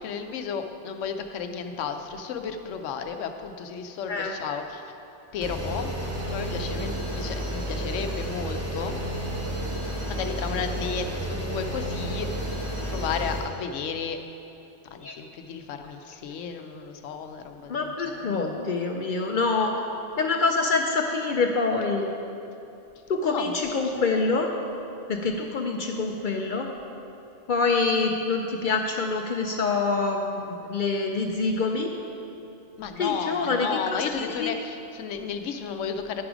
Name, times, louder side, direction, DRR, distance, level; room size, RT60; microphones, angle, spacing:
voice 1, 0.0-4.9 5.3-5.9 6.3-9.0 9.5-9.6 10.1-14.2 14.9-18.4 23.3-24.3 32.8-36.2, left 6 dB, 90° left, 7 dB, 0.9 m, -33 dB
sound 1, 5.4-13.4, right 1 dB, 15° right, 0.8 m, -31 dB
voice 2, 17.7-19.8 20.2-22.1 23.1-24.5 25.1-26.7 27.5-31.9 33.0-33.7 34.2-34.5, left 4 dB, 60° left, 3 dB, 0.5 m, -26 dB
10.0 x 4.8 x 5.0 m, 2.8 s
omnidirectional pair, 1.2 m